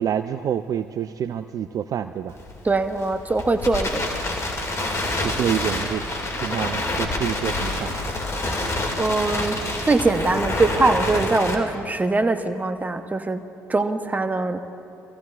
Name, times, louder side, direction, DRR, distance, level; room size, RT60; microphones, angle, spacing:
voice 1, 0.0-2.3 5.2-6.0 6.4-7.9, right 9 dB, 45° right, 10 dB, 0.4 m, -27 dB
Crackle, 2.3-11.5, left 2 dB, 35° left, 2.3 m, -27 dB
voice 2, 2.6-4.0 9.0-13.4 13.7-14.6, right 3 dB, 20° right, 8 dB, 0.8 m, -22 dB
25.0 x 15.0 x 2.5 m, 2.6 s
hypercardioid pair, 55°, 8 cm